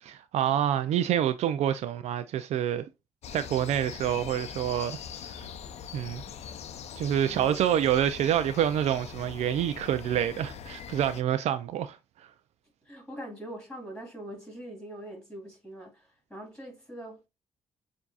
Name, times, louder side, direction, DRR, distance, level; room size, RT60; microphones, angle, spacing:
voice 1, 0.0-2.9 3.3-5.0 5.2-5.5 5.9-6.2 7.0-12.0, right 10 dB, 75° right, 0.4 m, -27 dB
sound 1, 3.2-11.2, left 7 dB, 70° left, 0.5 m, -42 dB
voice 2, 7.2-7.6 12.8-17.3, right 1 dB, 5° left, 3.1 m, -43 dB
7.1 x 2.7 x 2.3 m
cardioid pair, 75°, 11 cm